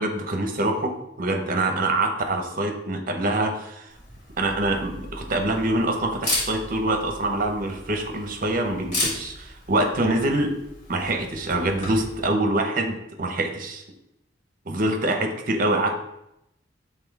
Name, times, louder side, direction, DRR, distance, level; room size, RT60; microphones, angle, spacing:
voice 1, 0.0-3.9 4.4-10.5 10.9-13.8 14.7-16.0, right 2 dB, 50° right, 4 dB, 0.9 m, -25 dB
Camera, 3.9-12.2, left 1 dB, 40° left, 2.6 m, -34 dB
6.0 x 3.9 x 4.7 m, 0.83 s
head